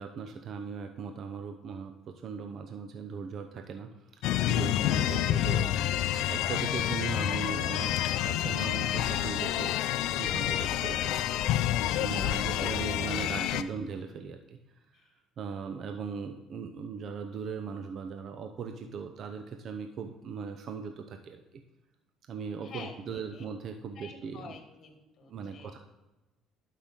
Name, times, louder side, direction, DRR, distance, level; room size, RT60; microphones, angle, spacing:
voice 1, 0.0-3.9 4.5-9.7 10.1-11.2 12.0-14.6 15.4-21.6 22.3-24.5 25.2-25.8, right 6 dB, 50° right, 6 dB, 0.7 m, -39 dB
sound 1, 4.2-13.6, left 12 dB, 75° left, 0.4 m, -28 dB
voice 2, 12.4-13.0 13.3-13.6 14.9-15.1 22.6-23.5 24.0-25.8, left 5 dB, 45° left, 4 dB, 1.8 m, -48 dB
11.5 x 5.5 x 3.7 m, 1.0 s
supercardioid pair, 95°, 0 cm